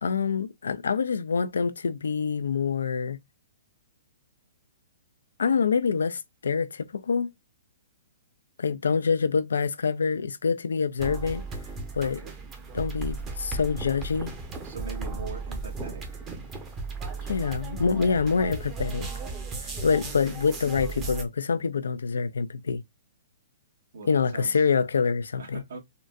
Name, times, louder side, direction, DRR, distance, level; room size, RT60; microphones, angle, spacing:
voice 1, 0.0-3.2 5.4-7.3 8.6-11.4 11.9-12.2 12.7-14.3 17.3-19.1 19.6-22.8 24.1-25.6, left 5 dB, 85° left, 0.4 m, -26 dB
sound 1, 11.0-21.2, right 3 dB, 20° right, 0.9 m, -36 dB
voice 2, 12.0-12.3 14.6-16.0 23.9-24.6 25.4-25.8, right 4 dB, 65° right, 1.6 m, -41 dB
3.8 x 2.2 x 2.4 m
hypercardioid pair, 135°, 0 cm